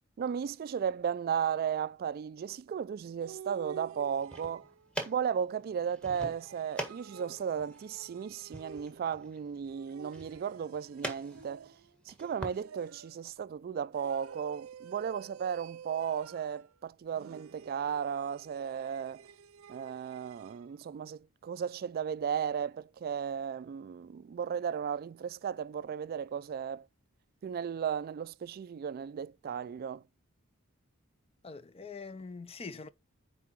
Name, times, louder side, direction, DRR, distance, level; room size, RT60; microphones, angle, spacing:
voice 1, 0.2-4.7 5.1-11.7 12.1-19.2 19.7-26.9 27.4-30.0, right 7 dB, 45° right, 0.3 m, -35 dB
sound 1, 3.2-4.9 6.1-9.2 9.7-12.0 12.5-13.2 13.9-16.7 17.1-20.7, right 7 dB, 85° right, 0.6 m, -51 dB
sound 2, 4.1-12.6, right 1 dB, 5° left, 1.8 m, -44 dB
voice 2, 31.4-32.9, left 4 dB, 30° left, 0.5 m, -43 dB
9.7 x 3.6 x 4.6 m
head